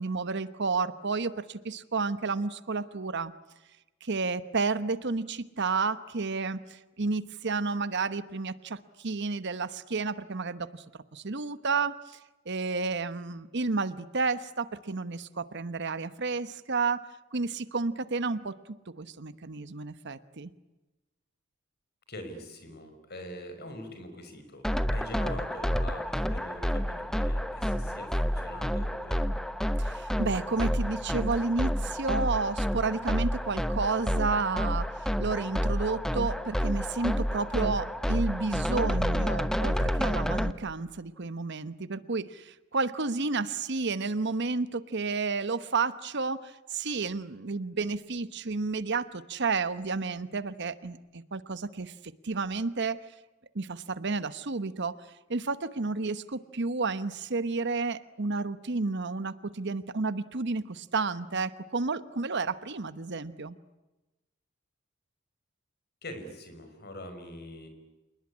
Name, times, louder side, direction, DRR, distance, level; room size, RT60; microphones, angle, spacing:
voice 1, 0.0-3.3 4.0-12.2 12.5-17.0 17.3-18.6 18.9-20.5 29.8-53.0 53.5-54.9 55.3-63.6, right 4 dB, 55° right, 14 dB, 1.0 m, -31 dB
voice 2, 22.1-29.3 66.0-67.7, left 1 dB, 50° left, 8 dB, 5.4 m, -44 dB
sound 1, 24.6-40.5, equal, 5° left, 1.0 m, -29 dB
28.0 x 20.0 x 9.8 m, 1.1 s
head